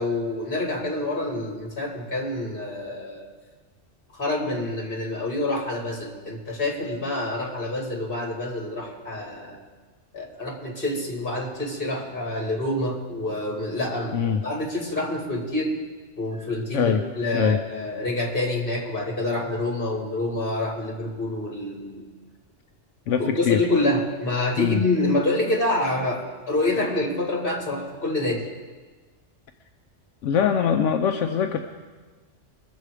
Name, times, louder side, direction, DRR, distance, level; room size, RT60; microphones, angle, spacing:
voice 1, 0.0-3.3 4.1-9.6 10.1-15.7 16.2-22.1 23.2-28.5, left 2 dB, 50° left, -1 dB, 2.6 m, -27 dB
voice 2, 14.1-14.4 16.7-17.0 17.3-17.6 23.1-23.6 24.6-24.8 30.2-31.6, left 7 dB, 85° left, 5 dB, 1.0 m, -22 dB
22.0 x 7.5 x 4.8 m, 1.3 s
omnidirectional pair, 1.2 m